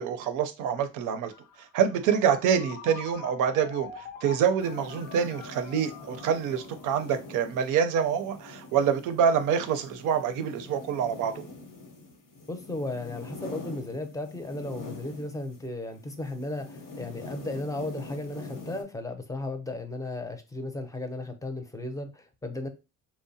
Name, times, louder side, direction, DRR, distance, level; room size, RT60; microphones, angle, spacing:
voice 1, 0.0-1.3 1.6-11.4, right 7 dB, 90° right, 0.5 m, -26 dB
Ringtone, 1.3-8.8, left 6 dB, 70° left, 0.5 m, -46 dB
sound 1, 4.6-15.7 15.9-18.8, left 2 dB, 85° left, 0.9 m, -44 dB
voice 2, 12.5-22.7, left 2 dB, 10° left, 0.5 m, -35 dB
2.7 x 2.0 x 2.6 m
cardioid pair, 90°, 30 cm